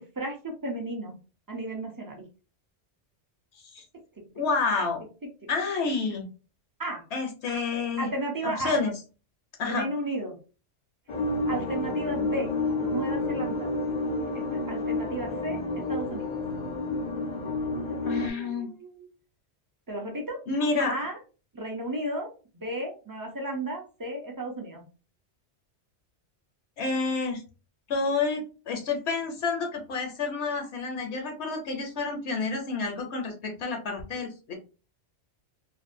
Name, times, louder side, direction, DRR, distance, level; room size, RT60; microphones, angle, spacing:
voice 1, 0.2-1.2 1.5-2.2 6.8-7.0 8.0-8.8 9.6-10.4 11.5-12.5 12.8-13.7 14.3-15.6 15.9-16.4 17.9-19.1 19.9-20.4 20.8-21.2 21.5-22.3 22.5-24.8, right 1 dB, 30° right, 0 dB, 0.3 m, -34 dB
voice 2, 4.4-5.0 5.5-6.2 7.1-8.1 8.4-8.9 9.6-9.9 18.1-18.7 20.5-21.0 26.8-27.4 27.9-34.5, left 4 dB, 70° left, 3 dB, 0.9 m, -29 dB
sound 1, 11.1-18.3, left 2 dB, 50° left, 0.6 m, -30 dB
2.6 x 2.2 x 2.5 m, 0.34 s
omnidirectional pair, 1.2 m